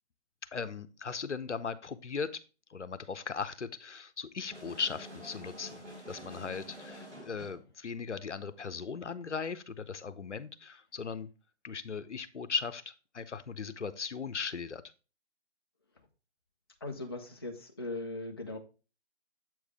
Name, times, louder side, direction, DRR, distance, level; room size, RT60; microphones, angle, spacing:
voice 1, 0.5-2.4 2.7-5.8 6.1-11.3 11.6-14.8, left 5 dB, 90° left, 13 dB, 0.6 m, -38 dB
sound 1, 4.5-7.7, equal, 90° right, 3.1 m, -48 dB
voice 2, 16.8-18.6, left 2 dB, 25° left, 3 dB, 0.4 m, -39 dB
7.5 x 4.7 x 3.4 m, 0.32 s
figure-of-eight pair, 140°, 34 cm